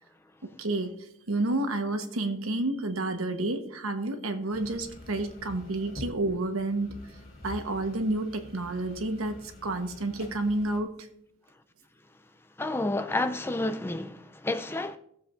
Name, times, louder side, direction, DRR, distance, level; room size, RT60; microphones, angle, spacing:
voice 1, 0.6-0.9 1.3-6.9 7.4-10.9, right 2 dB, 90° right, 1.1 m, -30 dB
sound 1, 4.5-10.8, left 1 dB, 45° left, 2.8 m, -46 dB
voice 2, 12.6-15.0, left 2 dB, 10° left, 0.4 m, -30 dB
17.5 x 7.4 x 2.5 m
head